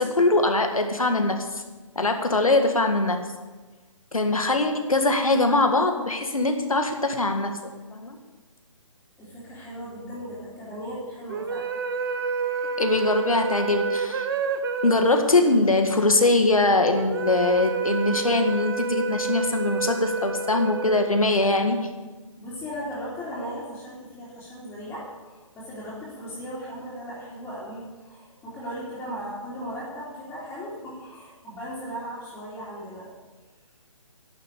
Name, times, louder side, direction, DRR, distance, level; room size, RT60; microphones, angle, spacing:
voice 1, 0.0-1.4 2.0-3.2 4.1-7.5 7.9-8.2 12.8-14.3 14.8-21.8, left 2 dB, 90° left, 5 dB, 1.8 m, -22 dB
voice 2, 9.2-11.8 22.4-33.1, equal, 10° left, -12 dB, 3.3 m, -37 dB
sound 1, 11.3-21.7, right 4 dB, 40° right, 1.0 m, -30 dB
11.5 x 7.2 x 8.4 m, 1.3 s
figure-of-eight pair, 145°, 17 cm